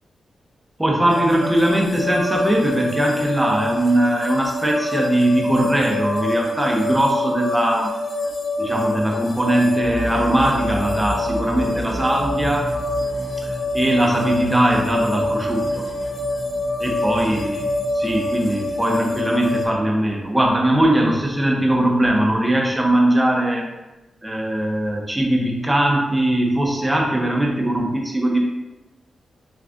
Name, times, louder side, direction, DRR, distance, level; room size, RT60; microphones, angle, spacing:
voice 1, 0.8-7.9 8.6-12.7 13.4-15.9 16.8-17.6 17.9-23.7 24.2-28.4, right 1 dB, 10° right, -1 dB, 0.7 m, -20 dB
sound 1, 1.1-19.7, left 1 dB, 65° left, 0.9 m, -26 dB
sound 2, 9.8-19.7, right 1 dB, 5° left, 0.3 m, -33 dB
6.7 x 2.4 x 2.5 m, 1.0 s
wide cardioid pair, 125°, 0 cm